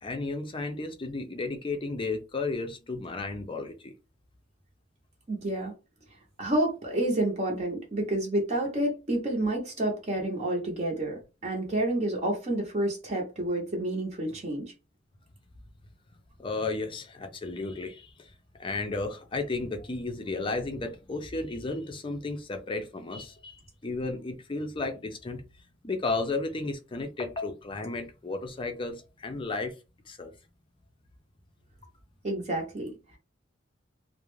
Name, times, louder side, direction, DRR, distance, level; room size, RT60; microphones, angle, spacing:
voice 1, 0.0-3.9 16.4-18.3 18.6-25.4 25.8-29.7 30.1-30.3, left 3 dB, 25° left, 0.5 m, -33 dB
voice 2, 5.3-5.7 6.4-14.7 32.2-33.2, right 1 dB, 35° right, 0.7 m, -29 dB
2.4 x 2.1 x 3.1 m
head